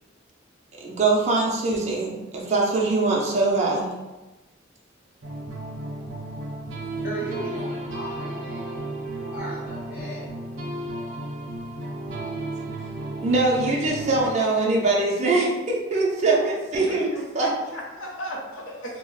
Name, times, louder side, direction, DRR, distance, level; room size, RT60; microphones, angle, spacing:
voice 1, 0.8-3.9 12.1-12.4 13.2-17.1 17.3-17.5, right 3 dB, 35° right, -3 dB, 0.4 m, -23 dB
sound 1, 5.2-14.2, right 1 dB, 80° right, 0.6 m, -33 dB
voice 2, 7.0-10.4 13.9-14.4, right 1 dB, 40° left, -10 dB, 0.7 m, -37 dB
voice 3, 16.8-19.0, equal, 85° left, -1 dB, 0.7 m, -36 dB
2.4 x 2.0 x 3.8 m, 1.1 s
head